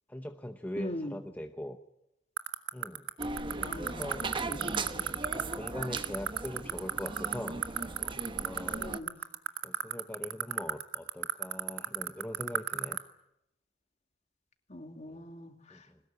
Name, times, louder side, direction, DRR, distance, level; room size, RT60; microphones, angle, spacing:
voice 1, 0.1-1.8 2.7-3.1 3.8-4.3 5.3-7.7 8.0-8.9 9.6-13.0 15.1-15.2 15.7-16.0, left 1 dB, 10° left, 6 dB, 0.9 m, -41 dB
voice 2, 0.8-1.2 3.6-5.1 8.7-9.1 14.7-15.9, left 1 dB, 35° left, 6 dB, 2.5 m, -42 dB
sound 1, 2.4-13.0, right 9 dB, 75° right, 1.6 m, -29 dB
sound 2, 3.2-9.0, right 3 dB, 25° right, 1.0 m, -38 dB
22.0 x 20.0 x 9.6 m, 0.86 s
head